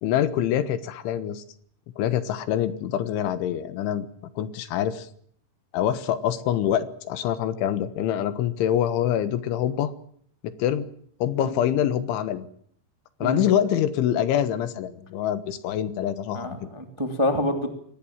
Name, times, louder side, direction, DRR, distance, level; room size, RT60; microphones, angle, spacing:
voice 1, 0.0-1.4 2.0-4.1 4.4-5.1 5.7-9.9 10.4-10.9 11.2-12.5 13.2-16.7, left 10 dB, 85° left, 12 dB, 3.8 m, -25 dB
voice 2, 16.3-17.7, left 1 dB, 10° right, 5 dB, 1.3 m, -27 dB
25.0 x 19.0 x 7.4 m, 0.64 s
omnidirectional pair, 5.3 m